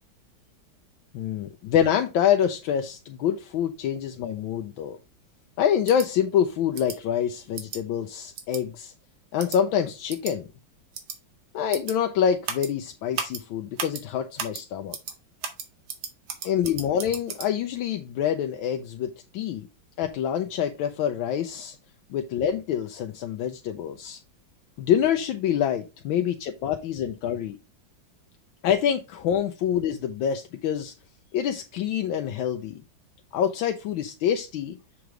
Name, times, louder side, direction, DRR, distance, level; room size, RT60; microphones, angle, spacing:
voice 1, 1.1-5.0 5.6-8.9 9.3-10.5 11.5-15.0 16.4-19.7 20.0-21.8 22.1-24.2 24.8-27.6 28.6-30.9 31.3-32.8 33.3-34.8, left 9 dB, 80° left, 1.4 m, -26 dB
sound 1, 5.9-6.1 6.7-7.0 7.6-7.8 8.4-8.6 9.4-9.6 10.1-10.3 10.9-11.2 11.7-11.9 12.4-12.7 13.1-13.4 13.8-14.0 14.4-14.6 14.9-15.1 15.4-17.5, right 7 dB, 80° right, 1.8 m, -34 dB
6.9 x 3.2 x 5.0 m
omnidirectional pair, 2.2 m